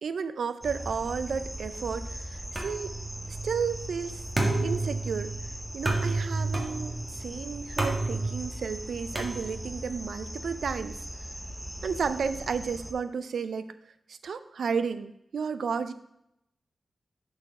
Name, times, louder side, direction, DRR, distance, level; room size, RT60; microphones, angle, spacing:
voice 1, 0.0-2.9 3.3-4.2 4.6-5.3 5.7-11.0 11.8-13.7 14.1-15.9, right 6 dB, 85° right, 12 dB, 0.4 m, -32 dB
sound 1, 0.6-12.9, equal, 10° right, 0.7 m, -40 dB
sound 2, 2.6-9.9, right 2 dB, 30° right, 1.6 m, -32 dB
6.8 x 4.3 x 5.5 m, 0.81 s
wide cardioid pair, 90°, 0 cm